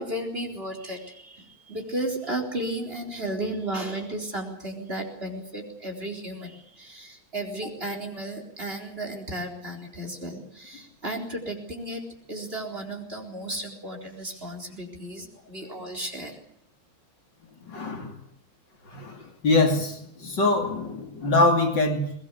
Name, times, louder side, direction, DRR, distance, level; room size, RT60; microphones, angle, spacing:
voice 1, 0.0-12.0 12.3-16.4, right 1 dB, 25° right, 2 dB, 4.4 m, -34 dB
voice 2, 17.7-18.1 18.9-22.1, left 2 dB, 60° left, 4 dB, 3.4 m, -24 dB
23.0 x 20.0 x 8.4 m, 0.70 s
omnidirectional pair, 2.2 m